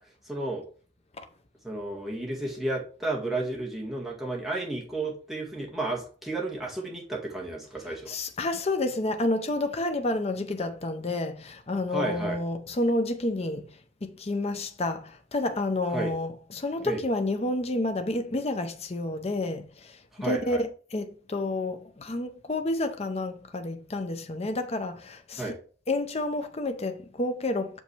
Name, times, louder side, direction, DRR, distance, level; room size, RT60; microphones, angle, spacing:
voice 1, 0.3-0.6 1.6-8.2 11.9-12.4 15.9-16.1 16.8-17.0 20.2-20.6 25.4-25.6, right 2 dB, ahead, 1.8 m, -32 dB
voice 2, 8.1-25.6 25.9-27.8, left 2 dB, 35° left, 0.7 m, -30 dB
6.4 x 5.3 x 3.3 m
head